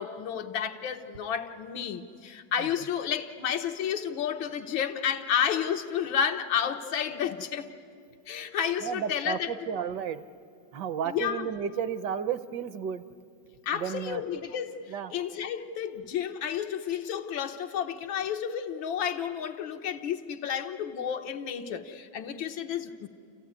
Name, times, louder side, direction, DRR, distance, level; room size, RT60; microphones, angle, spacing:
voice 1, 0.0-7.7 8.3-9.5 11.1-11.5 13.7-14.8 15.1-23.1, left 8 dB, 90° left, 6 dB, 1.8 m, -31 dB
voice 2, 8.8-10.2 10.7-13.0 13.7-14.2 14.9-15.1, right 8 dB, 70° right, 13 dB, 1.3 m, -32 dB
29.5 x 15.0 x 9.7 m, 2.4 s
omnidirectional pair, 2.1 m